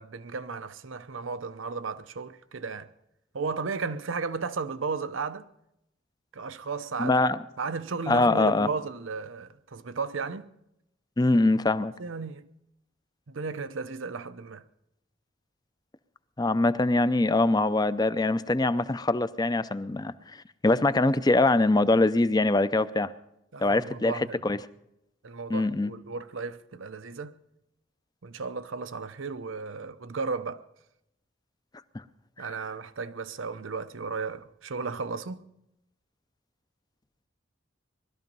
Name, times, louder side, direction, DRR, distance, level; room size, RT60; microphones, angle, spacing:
voice 1, 0.0-2.9 3.3-5.5 6.3-7.2 7.6-10.5 12.0-12.5 13.3-14.6 23.5-24.4 25.2-27.4 28.2-30.7 32.4-35.5, right 4 dB, 90° right, 0.8 m, -34 dB
voice 2, 7.0-7.4 8.1-8.7 11.2-11.9 16.4-20.1 20.6-23.1 23.6-24.6 25.5-25.9 32.4-32.5, left 2 dB, 20° left, 0.5 m, -23 dB
20.0 x 13.0 x 5.4 m
head